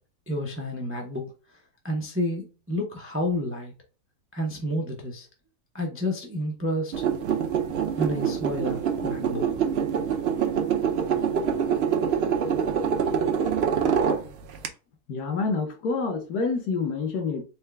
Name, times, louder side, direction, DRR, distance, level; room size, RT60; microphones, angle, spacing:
voice 1, 0.3-1.6 1.8-3.7 4.3-5.3 5.7-7.0 8.0-9.5, left 1 dB, 20° right, 0.4 m, -30 dB
sound 1, 6.9-14.7, right 7 dB, 65° right, 0.6 m, -25 dB
voice 2, 15.1-17.4, left 4 dB, 85° left, 1.5 m, -27 dB
4.4 x 2.2 x 3.4 m
omnidirectional pair, 1.6 m